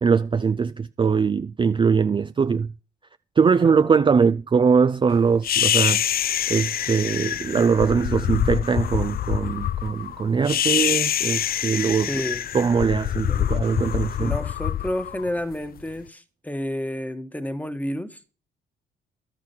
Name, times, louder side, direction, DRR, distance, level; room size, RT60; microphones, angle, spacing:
voice 1, 0.0-2.7 3.4-6.0 6.5-12.1 12.5-14.3, right 5 dB, 25° right, 0.5 m, -21 dB
voice 2, 3.6-4.0 12.1-12.4 13.3-13.4 14.2-18.2, left 1 dB, 10° left, 1.4 m, -30 dB
sound 1, 5.4-15.8, left 10 dB, 50° left, 0.5 m, -25 dB
12.0 x 8.8 x 4.4 m
cardioid pair, 90°, 20 cm